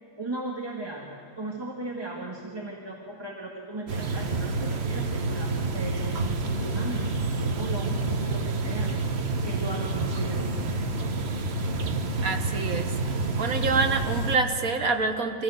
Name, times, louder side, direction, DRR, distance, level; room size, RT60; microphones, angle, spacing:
voice 1, 0.2-8.9 9.4-10.9, right 2 dB, 15° right, -1 dB, 1.9 m, -37 dB
sound 1, 3.9-14.4, right 3 dB, 45° right, 1.3 m, -28 dB
voice 2, 12.2-12.9 13.3-15.4, right 4 dB, 60° right, 6 dB, 1.7 m, -26 dB
25.0 x 16.0 x 7.8 m, 2.9 s
omnidirectional pair, 1.7 m